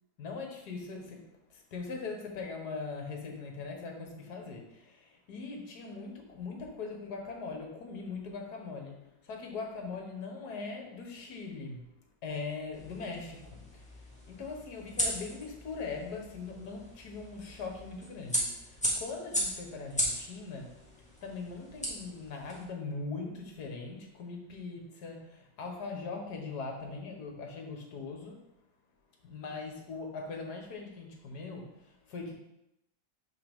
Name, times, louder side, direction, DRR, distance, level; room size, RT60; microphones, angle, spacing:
voice 1, 0.2-1.2 1.5-9.0 9.2-11.8 12.2-13.8 14.3-20.7 21.2-28.4 29.2-32.3, left 4 dB, 60° left, 2 dB, 1.6 m, -41 dB
sound 1, 12.7-22.6, equal, 5° left, 1.4 m, -37 dB
6.7 x 5.7 x 3.6 m, 0.85 s
omnidirectional pair, 2.1 m